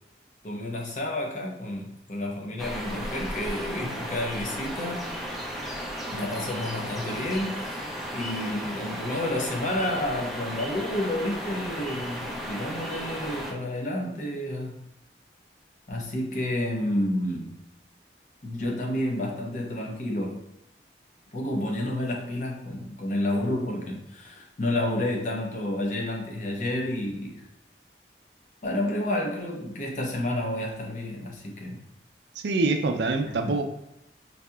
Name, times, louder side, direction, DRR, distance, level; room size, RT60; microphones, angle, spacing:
voice 1, 0.4-5.1 6.1-7.7 8.1-14.8 15.9-17.6 18.4-20.4 21.3-27.4 28.6-31.8 33.2-33.6, left 1 dB, 45° left, 0 dB, 0.7 m, -30 dB
sound 1, 2.6-13.5, equal, ahead, 0.4 m, -35 dB
voice 2, 32.4-33.6, right 3 dB, 80° right, 5 dB, 0.4 m, -25 dB
4.0 x 2.8 x 2.3 m, 0.87 s
head